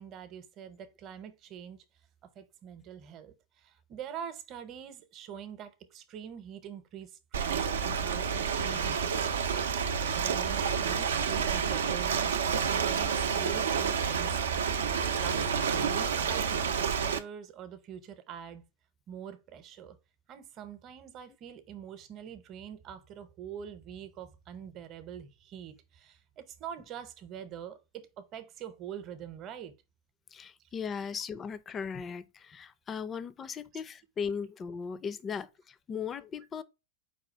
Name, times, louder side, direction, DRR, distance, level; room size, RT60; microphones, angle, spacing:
voice 1, 0.0-1.8 2.2-9.7 10.1-12.3 12.7-14.7 15.2-18.7 19.1-20.0 20.3-29.7 30.6-30.7, right 8 dB, 40° right, 0.8 m, -44 dB
Ocean, 7.3-17.2, right 6 dB, 90° right, 0.5 m, -29 dB
voice 2, 30.3-36.6, left 6 dB, 25° left, 0.4 m, -38 dB
4.8 x 2.4 x 4.3 m
hypercardioid pair, 110°, 0 cm